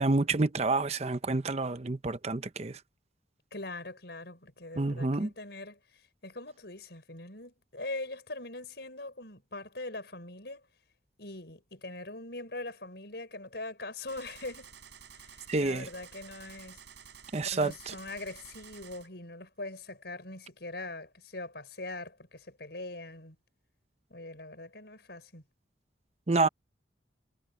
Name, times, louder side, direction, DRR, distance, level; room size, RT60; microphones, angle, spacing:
voice 1, 0.0-2.8 4.8-5.3 15.5-15.9 17.3-17.7 26.3-26.5, right 3 dB, 35° right, 0.7 m, -28 dB
voice 2, 3.5-10.7 11.2-14.8 15.1-16.8 17.3-23.4 24.1-25.4, left 2 dB, 65° left, 5.7 m, -42 dB
Gunshot gunfire, 14.1-19.1, right 7 dB, 80° right, 7.7 m, -52 dB
head